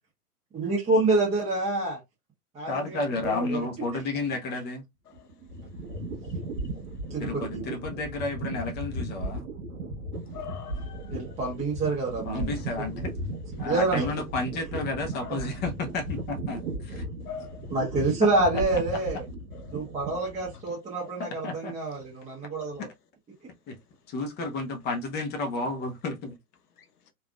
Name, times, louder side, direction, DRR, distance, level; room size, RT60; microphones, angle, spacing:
voice 1, 0.5-2.0 2.6-3.6 7.1-7.7 11.1-12.5 13.6-14.1 15.4-15.5 16.9-17.0 17.7-19.3 19.7-22.9, right 3 dB, 15° right, 1.0 m, -27 dB
voice 2, 2.7-4.8 7.2-9.4 12.2-13.1 13.6-17.0 18.2-18.6 21.2-21.7 23.7-23.8 24.1-26.3, left 3 dB, 20° left, 0.7 m, -32 dB
sound 1, 5.1-20.6, right 1 dB, 55° right, 1.5 m, -36 dB
voice 3, 10.3-11.2 15.1-15.6 17.2-17.7 19.5-19.8 21.0-21.1 26.8-26.9, left 8 dB, 80° left, 0.9 m, -43 dB
3.4 x 2.5 x 2.4 m
hypercardioid pair, 110°, 46 cm